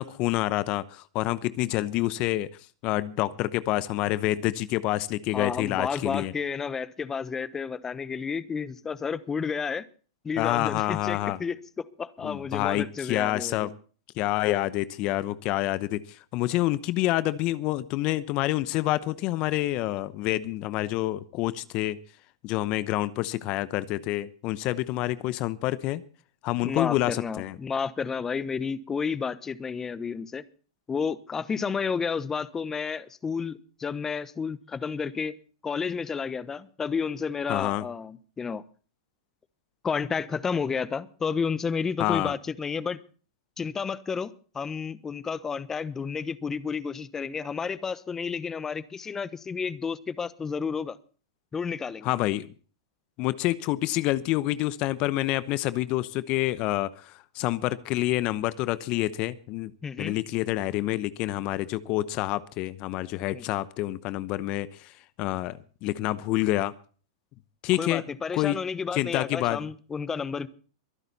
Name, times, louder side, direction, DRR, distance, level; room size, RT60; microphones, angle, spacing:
voice 1, 0.0-2.5 2.8-6.3 10.4-11.4 12.2-13.7 14.2-22.0 22.4-26.0 26.4-27.6 37.5-37.8 42.0-42.4 52.0-52.5 53.2-59.7 60.0-66.7 67.6-68.0 68.3-68.6 68.9-69.6, left 16 dB, 45° left, 16 dB, 0.9 m, -27 dB
voice 2, 5.3-9.8 10.2-13.7 26.6-30.4 30.9-35.4 35.6-38.6 39.8-43.0 43.6-44.3 44.5-51.0 51.5-52.1 59.8-60.1 63.3-63.4 67.8-70.5, left 5 dB, 20° left, 16 dB, 1.0 m, -31 dB
23.0 x 10.5 x 4.1 m, 0.39 s
hypercardioid pair, 120°, 2 cm